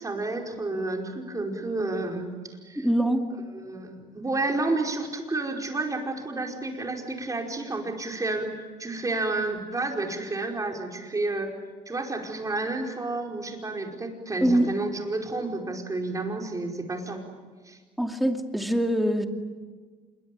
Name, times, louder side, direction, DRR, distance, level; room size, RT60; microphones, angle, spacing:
voice 1, 0.0-2.3 2.6-2.9 3.5-11.5 11.9-17.2 17.7-17.8, right 2 dB, 20° right, 2 dB, 5.1 m, -30 dB
voice 2, 2.8-3.2 14.4-14.7 18.0-19.3, right 1 dB, ahead, 4 dB, 2.5 m, -23 dB
27.0 x 23.0 x 9.3 m, 1.5 s
cardioid pair, 110°, 17 cm